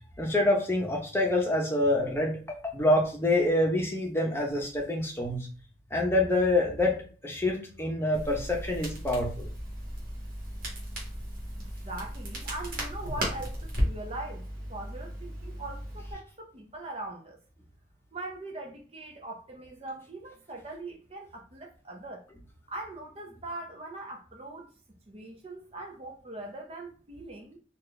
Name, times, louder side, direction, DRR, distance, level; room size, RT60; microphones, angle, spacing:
voice 1, 0.2-5.5 5.9-7.0 7.2-9.3, left 1 dB, 15° left, 0.9 m, -26 dB
Crackle, 8.1-16.1, equal, 50° right, 1.6 m, -35 dB
voice 2, 11.8-14.4 14.7-17.4 18.1-22.2 22.7-24.7 25.1-27.6, right 2 dB, 30° right, 0.6 m, -41 dB
4.2 x 2.5 x 3.3 m
head